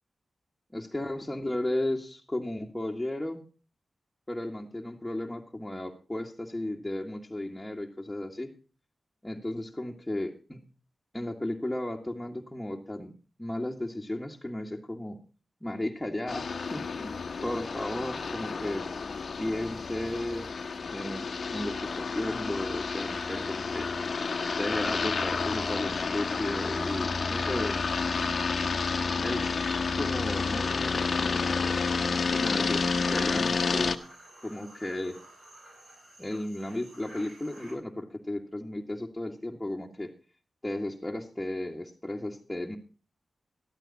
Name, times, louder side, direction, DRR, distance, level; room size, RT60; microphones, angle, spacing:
voice 1, 0.7-3.4 4.3-8.5 9.2-10.6 11.1-13.1 13.4-15.2 15.6-17.2 17.4-18.9 19.4-20.5 20.9-24.1 24.6-27.8 29.2-31.5 32.3-34.0 34.4-35.2 36.2-40.1 40.6-42.8, left 1 dB, 10° left, -2 dB, 2.1 m, -34 dB
sound 1, 16.3-34.0, left 4 dB, 65° left, 1.0 m, -30 dB
sound 2, 32.1-37.7, right 1 dB, 65° right, 7.7 m, -52 dB
13.5 x 12.5 x 4.3 m, 0.36 s
cardioid pair, 40°, 0 cm